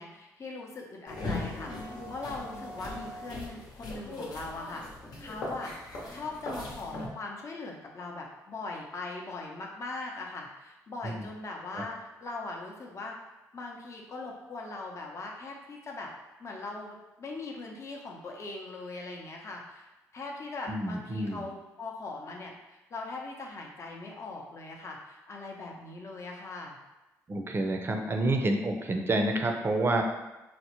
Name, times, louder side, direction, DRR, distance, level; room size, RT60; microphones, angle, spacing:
voice 1, 0.0-4.8 5.2-5.7 6.1-13.2 13.5-16.1 16.4-19.9 20.1-26.8, left 3 dB, 45° left, 0 dB, 0.6 m, -40 dB
sound 1, 1.1-7.1, left 2 dB, 70° left, 0.8 m, -39 dB
voice 2, 20.7-21.4 27.3-30.0, right 2 dB, 35° right, 4 dB, 0.5 m, -28 dB
4.2 x 2.0 x 2.9 m, 1.0 s
supercardioid pair, 65°, 7 cm